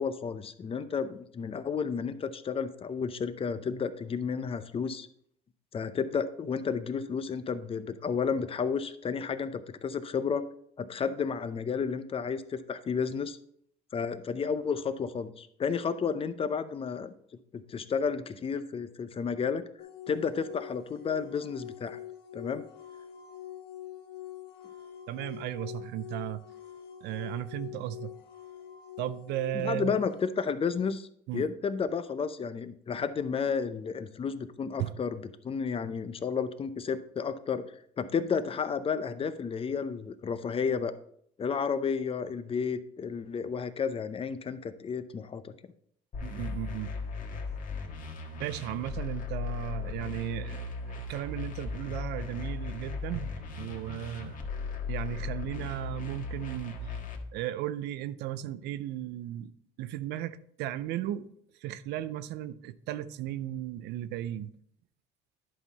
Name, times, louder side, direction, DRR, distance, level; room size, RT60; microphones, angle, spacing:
voice 1, 0.0-5.1 5.7-10.4 10.8-13.4 13.9-17.1 17.5-19.7 20.1-22.0 22.3-22.6 29.6-31.1 31.3-37.7 38.0-40.9 41.4-45.5, left 6 dB, 35° left, 0.6 m, -32 dB
sound 1, 19.8-30.2, left 12 dB, 85° left, 1.1 m, -45 dB
voice 2, 25.1-26.4 27.0-28.1 29.0-30.0 31.3-31.5 34.8-34.9 46.2-46.9 48.3-54.4 54.9-57.0 57.3-59.5 59.8-61.3 61.6-64.5, right 12 dB, 85° right, 0.5 m, -35 dB
sound 2, 46.1-57.2, left 4 dB, 50° left, 1.6 m, -37 dB
10.5 x 5.5 x 4.1 m
cardioid pair, 110°, 17 cm